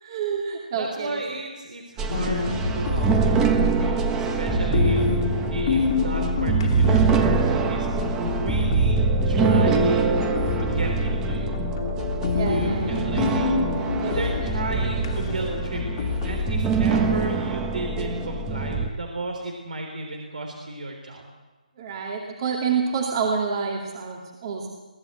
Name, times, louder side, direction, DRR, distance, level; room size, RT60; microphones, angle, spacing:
voice 1, 0.0-1.2 3.2-4.0 12.3-13.4 14.0-14.3 14.7-14.9 21.8-24.7, right 5 dB, 40° right, 1 dB, 2.6 m, -29 dB
voice 2, 0.7-7.9 8.2-10.3 10.6-11.6 12.4-21.3, right 2 dB, 70° right, 3 dB, 3.5 m, -34 dB
sound 1, 2.0-18.9, right 4 dB, 10° right, 1.4 m, -24 dB
sound 2, 2.1-16.6, left 5 dB, 40° left, 2.2 m, -28 dB
23.0 x 16.0 x 8.0 m, 1.2 s
figure-of-eight pair, 150°, 4 cm